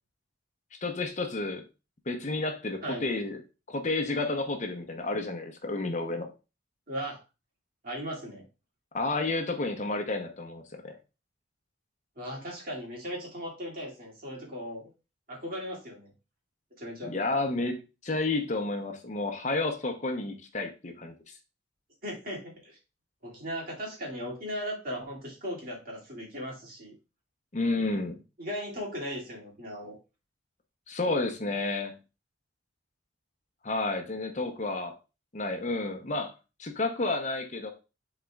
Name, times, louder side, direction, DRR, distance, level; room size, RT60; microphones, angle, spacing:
voice 1, 0.8-1.6 2.1-3.4 3.7-6.3 8.9-11.0 17.0-17.8 18.0-21.3 27.5-28.2 30.9-31.9 33.6-34.9 35.3-36.3 36.6-37.7, left 2 dB, 40° left, 5 dB, 0.8 m, -31 dB
voice 2, 6.9-7.2 7.8-8.4 12.2-14.8 15.3-16.1 16.8-17.1 22.0-22.8 23.2-26.9 28.4-30.0, equal, 50° right, -4 dB, 2.4 m, -37 dB
11.0 x 4.0 x 2.4 m, 0.30 s
head